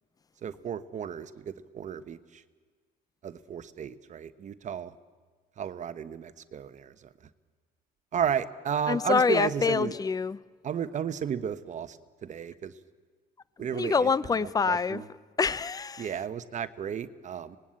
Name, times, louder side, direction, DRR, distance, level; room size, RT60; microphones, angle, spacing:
voice 1, 0.4-2.4 3.2-4.9 5.6-7.1 8.1-9.9 10.6-12.7 13.6-14.1 14.4-15.1 16.0-17.6, right 8 dB, 45° right, 1.1 m, -33 dB
voice 2, 8.9-10.4 13.7-15.0 15.4-16.1, left 5 dB, 20° left, 0.6 m, -26 dB
25.0 x 19.5 x 8.7 m
cardioid pair, 110°, 17 cm